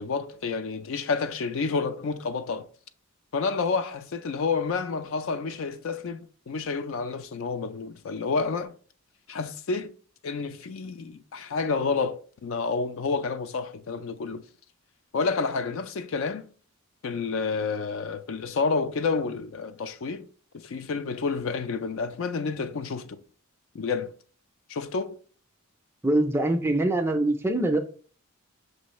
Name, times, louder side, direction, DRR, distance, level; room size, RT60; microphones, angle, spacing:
voice 1, 0.0-2.7 3.3-8.7 9.3-9.9 10.2-14.4 15.1-16.5 17.0-20.3 20.5-23.2 23.7-24.1 24.7-25.2, left 4 dB, 65° left, 0.4 m, -29 dB
voice 2, 26.0-27.8, right 1 dB, 10° right, 0.4 m, -23 dB
6.2 x 2.6 x 3.0 m
head